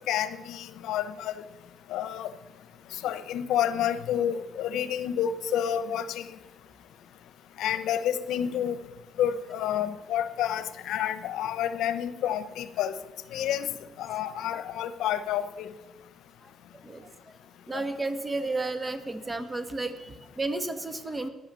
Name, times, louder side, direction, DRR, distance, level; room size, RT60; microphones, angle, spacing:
voice 1, 0.1-1.3 1.9-2.3 3.0-6.3 7.6-8.8 9.2-13.0 13.3-13.7 14.0-15.7 17.7-17.8, left 10 dB, 85° left, 12 dB, 0.9 m, -29 dB
voice 2, 16.4-17.1 17.7-21.3, right 2 dB, 20° right, 9 dB, 1.6 m, -33 dB
15.0 x 11.0 x 6.9 m, 1.1 s
cardioid pair, 90°, 0 cm